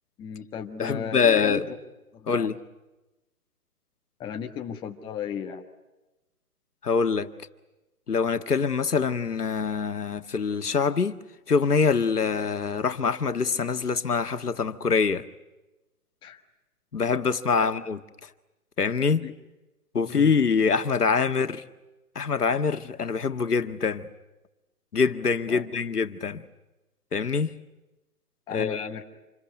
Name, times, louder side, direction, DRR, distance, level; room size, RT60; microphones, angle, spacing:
voice 1, 0.2-1.8 2.1-2.5 4.2-5.6 16.2-16.4 19.2-19.3 20.0-20.3 25.5-25.6 28.5-29.0, left 8 dB, 10° left, 1.3 m, -35 dB
voice 2, 0.8-1.7 2.3-2.6 6.8-7.3 8.1-11.1 11.5-15.2 16.9-18.0 18.8-19.3 19.9-21.6 22.1-24.1 24.9-26.4 27.1-27.6 28.5-29.0, left 5 dB, 90° left, 1.8 m, -24 dB
27.5 x 22.5 x 9.3 m
hypercardioid pair, 150°, 45 cm